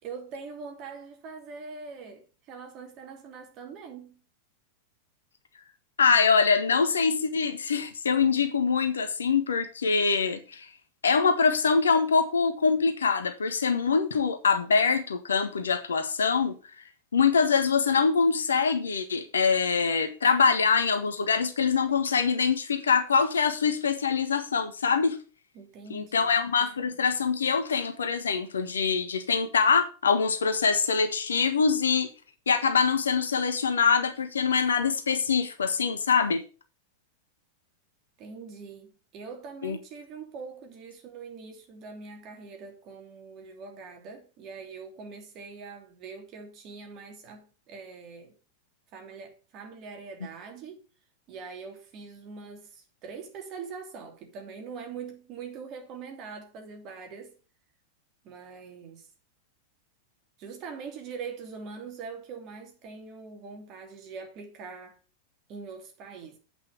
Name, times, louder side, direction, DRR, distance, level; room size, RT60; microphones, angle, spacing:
voice 1, 0.0-4.2 25.5-26.4 38.2-48.3 48.9-50.8 51.3-57.4 58.2-59.1 60.4-65.0 65.5-66.4, right 5 dB, 35° right, 2.9 m, -43 dB
voice 2, 6.0-10.7 11.0-16.6 17.1-25.2 25.9-32.1 32.5-36.4 39.6-39.8, left 5 dB, 70° left, 1.4 m, -24 dB
8.4 x 5.8 x 6.8 m
figure-of-eight pair, 90°, 0 cm